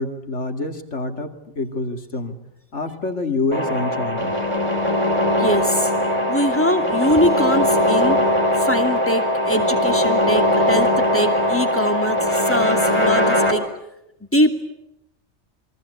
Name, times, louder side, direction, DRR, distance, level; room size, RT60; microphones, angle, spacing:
voice 1, 0.0-2.4 2.7-4.3, left 3 dB, 80° left, 6 dB, 2.7 m, -27 dB
sound 1, 3.5-13.5, left 1 dB, 25° right, 4.0 m, -20 dB
voice 2, 5.4-5.9 6.3-8.3 8.6-13.7 14.3-14.6, equal, 10° left, 5 dB, 2.7 m, -22 dB
28.5 x 23.5 x 8.3 m, 0.85 s
omnidirectional pair, 1.2 m